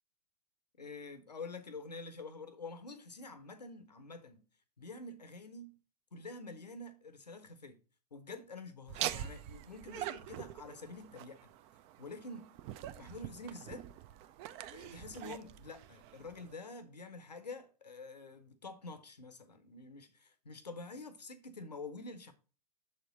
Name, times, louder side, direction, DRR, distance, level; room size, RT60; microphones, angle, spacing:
voice 1, 0.8-4.4 4.8-5.8 6.1-7.8 8.1-11.5 12.0-12.5 12.9-13.9 14.7-22.3, left 3 dB, 85° left, 0.7 m, -47 dB
Laughter, 8.9-16.5, right 12 dB, 30° right, 0.4 m, -44 dB
6.5 x 4.2 x 4.0 m
figure-of-eight pair, 100°, 21 cm